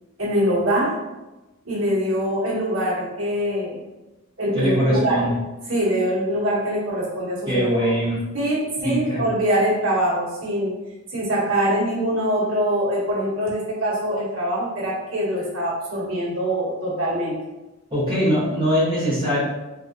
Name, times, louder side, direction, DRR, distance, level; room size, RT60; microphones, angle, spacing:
voice 1, 0.2-0.9 1.6-3.8 4.4-5.2 5.7-7.8 8.3-10.7 11.1-17.3, right 1 dB, 90° right, -6 dB, 1.3 m, -23 dB
voice 2, 4.5-5.4 7.5-8.2 8.8-9.3 17.9-19.4, equal, 25° right, -14 dB, 1.2 m, -21 dB
3.6 x 2.9 x 2.6 m, 1.1 s
head